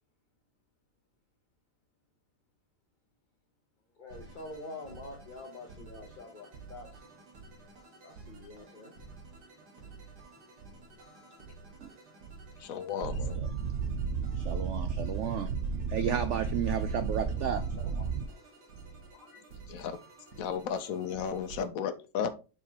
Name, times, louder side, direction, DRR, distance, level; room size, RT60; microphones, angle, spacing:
voice 1, 4.0-7.1 8.0-8.9 16.7-16.8, left 2 dB, 40° left, 0.7 m, -46 dB
sound 1, 4.1-21.7, right 3 dB, 70° right, 2.2 m, -52 dB
voice 2, 12.6-13.4 19.7-20.0 20.4-22.3, left 7 dB, 65° left, 1.0 m, -34 dB
sound 2, 13.0-18.3, right 5 dB, 55° right, 0.9 m, -33 dB
voice 3, 14.4-15.5 15.9-17.6, right 8 dB, 85° right, 0.6 m, -33 dB
voice 4, 17.5-19.4, equal, 25° right, 3.1 m, -55 dB
7.3 x 4.7 x 2.9 m
omnidirectional pair, 1.8 m